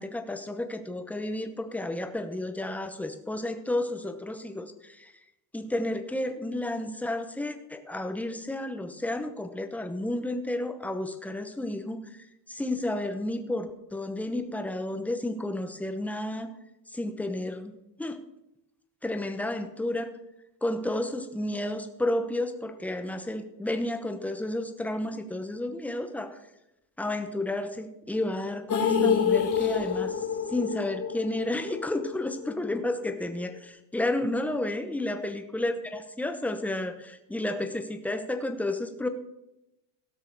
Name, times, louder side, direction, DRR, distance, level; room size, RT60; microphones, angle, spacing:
voice 1, 0.0-5.1 5.5-16.5 16.9-18.2 19.0-20.1 20.6-26.4 27.0-39.1, left 1 dB, 5° left, 7 dB, 0.9 m, -32 dB
sound 1, 28.7-32.8 33.1-33.2 33.6-33.7, left 6 dB, 35° left, 2.6 m, -27 dB
16.5 x 6.5 x 4.7 m, 0.90 s
cardioid pair, 130°, 49 cm